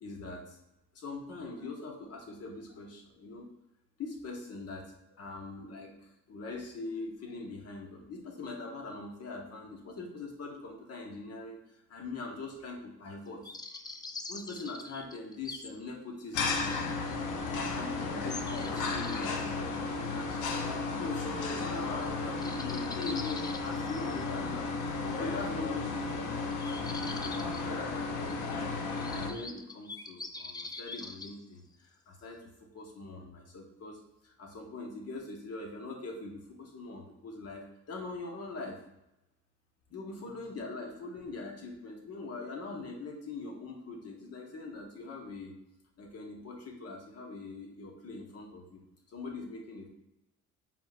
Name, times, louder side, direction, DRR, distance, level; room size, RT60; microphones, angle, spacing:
voice 1, 0.0-0.6 0.9-3.5 4.0-11.6 11.9-13.5 14.3-16.5 17.5-24.7 25.2-28.7 29.1-32.5 32.7-38.8 39.9-45.6 46.0-48.8 49.1-49.9, left 3 dB, 55° left, 1 dB, 1.1 m, -42 dB
sound 1, 13.4-15.7 16.2-16.3 17.1-17.2 18.3-19.3 21.6-21.8 22.0-22.1 22.4-24.2 26.5-27.6 28.3-28.4 29.0-31.3, left 3 dB, 15° left, 0.3 m, -43 dB
sound 2, 16.3-29.3, left 4 dB, 85° left, 0.6 m, -34 dB
4.9 x 3.5 x 2.4 m, 0.88 s
cardioid pair, 90°, 30 cm